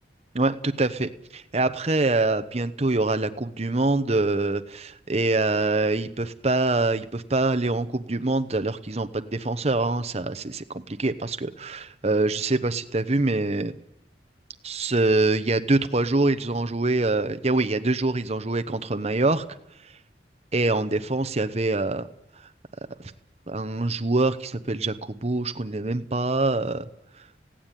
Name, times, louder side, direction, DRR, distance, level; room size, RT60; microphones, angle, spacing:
voice 1, 0.3-13.7 14.6-19.4 20.5-22.0 23.0-23.1 23.5-26.8, right 2 dB, 35° right, 9 dB, 0.9 m, -25 dB
19.0 x 16.5 x 9.1 m, 0.76 s
head